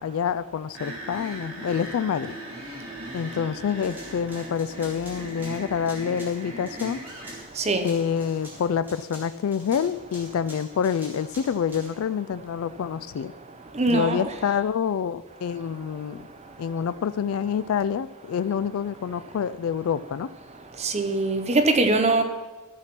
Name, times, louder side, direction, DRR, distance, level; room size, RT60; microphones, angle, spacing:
voice 1, 0.0-2.4 3.1-7.0 7.8-13.3 13.9-16.3 16.6-20.3, left 7 dB, 75° left, 0.3 m, -27 dB
sound 1, 0.7-7.4, right 1 dB, 70° right, 3.6 m, -39 dB
sound 2, 3.8-7.5 7.8-11.9, right 1 dB, 10° right, 2.8 m, -46 dB
voice 2, 7.6-7.9 13.8-14.2 20.8-22.2, right 2 dB, 30° right, 0.8 m, -22 dB
13.5 x 5.9 x 6.0 m
head